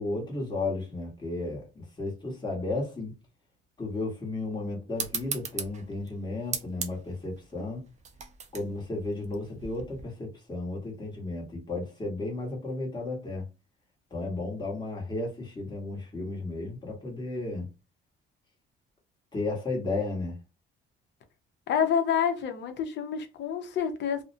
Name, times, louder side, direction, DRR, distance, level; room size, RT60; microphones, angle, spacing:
voice 1, 0.0-3.1 3.8-7.8 8.5-13.5 14.1-17.7 19.3-20.4, left 2 dB, 20° left, 1.2 m, -33 dB
sound 1, 4.9-10.0, right 6 dB, 35° right, 0.5 m, -38 dB
voice 2, 21.7-24.2, left 7 dB, 60° left, 0.7 m, -28 dB
2.5 x 2.1 x 2.6 m
cardioid pair, 125°, 20 cm